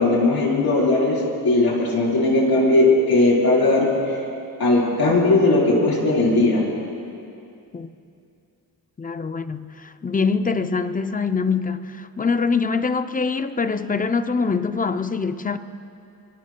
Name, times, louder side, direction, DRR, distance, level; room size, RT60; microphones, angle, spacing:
voice 1, 0.0-4.2 4.6-6.7, left 2 dB, 70° left, 4.2 m, -18 dB
voice 2, 9.0-15.6, left 4 dB, 25° left, 0.4 m, -24 dB
24.5 x 23.5 x 2.2 m
wide cardioid pair, 155°, 38 cm